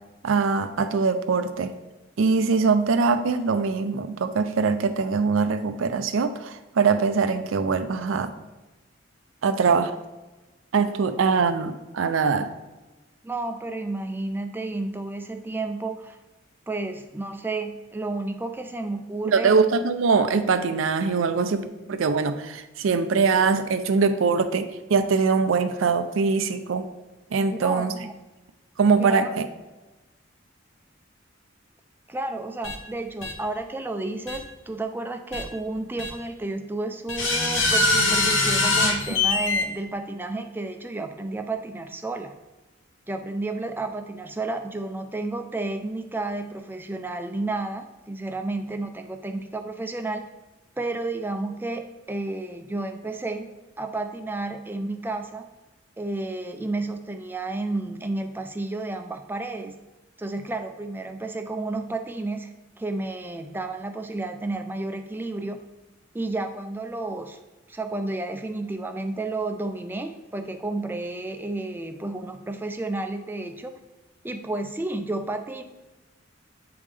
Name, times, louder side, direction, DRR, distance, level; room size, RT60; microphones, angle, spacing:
voice 1, 0.2-1.7 2.2-8.3 9.4-9.9 10.7-12.5 19.3-26.9 27.3-27.9 28.8-29.5, right 5 dB, 80° right, 10 dB, 0.5 m, -22 dB
voice 2, 13.2-16.2 16.7-19.6 27.6-28.1 29.0-29.4 32.1-42.3 43.1-50.2 50.8-53.5 53.8-55.4 56.0-59.8 60.2-62.5 62.8-65.6 66.1-67.4 67.7-73.8 74.2-75.6, right 2 dB, 10° right, 7 dB, 0.4 m, -31 dB
sound 1, 32.6-32.8 33.2-33.3 34.3-34.4 35.3-35.4 36.0-36.1 37.1-39.6, left 2 dB, 75° left, 1.0 m, -22 dB
8.5 x 3.6 x 3.3 m, 1.1 s
head